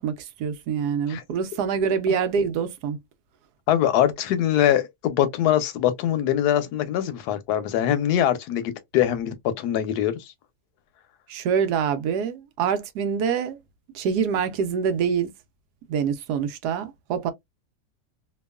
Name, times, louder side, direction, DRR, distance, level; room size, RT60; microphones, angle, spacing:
voice 1, 0.0-3.0 11.3-13.6 13.9-15.3 15.9-17.3, right 7 dB, 80° right, 1.1 m, -25 dB
voice 2, 3.7-10.3, left 11 dB, 80° left, 1.1 m, -23 dB
2.9 x 2.3 x 2.2 m
omnidirectional pair, 1.7 m